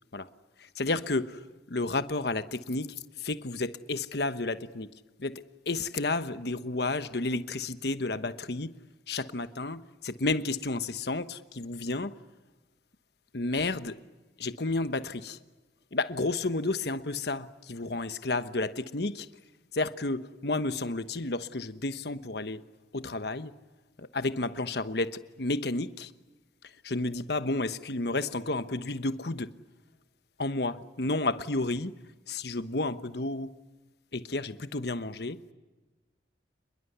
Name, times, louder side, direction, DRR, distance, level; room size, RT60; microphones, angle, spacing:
voice 1, 0.6-4.9 5.2-8.7 9.1-12.1 13.3-14.0 14.4-15.4 15.9-19.3 19.7-22.6 22.9-23.5 24.0-26.1 26.6-29.5 30.4-31.9 32.3-33.5 34.1-35.5, left 2 dB, 60° left, 1.1 m, -31 dB
28.0 x 21.5 x 8.2 m
head